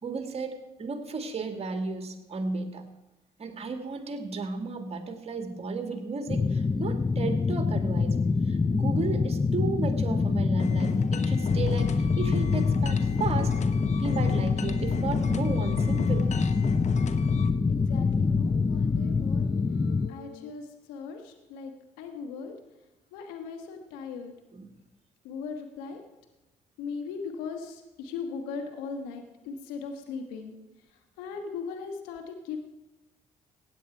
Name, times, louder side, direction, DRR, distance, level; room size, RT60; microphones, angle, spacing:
voice 1, 0.0-2.8 3.4-8.2 8.5-13.5 14.0-16.4 24.5-24.7, right 4 dB, 40° right, 6 dB, 2.0 m, -34 dB
sound 1, 6.3-20.1, left 4 dB, 20° left, 0.5 m, -26 dB
sound 2, 10.6-17.5, left 7 dB, 50° left, 1.0 m, -34 dB
sound 3, 11.5-20.5, left 10 dB, 70° left, 0.6 m, -38 dB
voice 2, 17.7-19.5 20.1-21.7 22.0-22.5 23.1-24.3 25.2-26.0 26.8-30.6 30.9-32.6, left 5 dB, 90° left, 5 dB, 1.4 m, -38 dB
16.0 x 9.2 x 4.6 m, 1.0 s
supercardioid pair, 65°, 15 cm